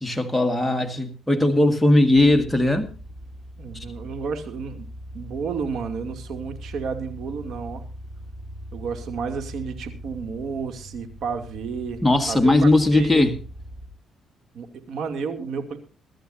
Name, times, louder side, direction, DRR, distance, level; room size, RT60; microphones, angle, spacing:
voice 1, 0.0-2.9 3.7-3.8 12.0-13.3, left 2 dB, 5° left, 1.7 m, -19 dB
sound 1, 2.1-13.9, equal, 15° right, 2.8 m, -40 dB
voice 2, 3.6-4.9 5.1-7.8 8.7-12.0 12.3-13.3 14.5-15.8, right 5 dB, 70° right, 2.6 m, -31 dB
23.5 x 12.5 x 2.7 m
cardioid pair, 90°, 0 cm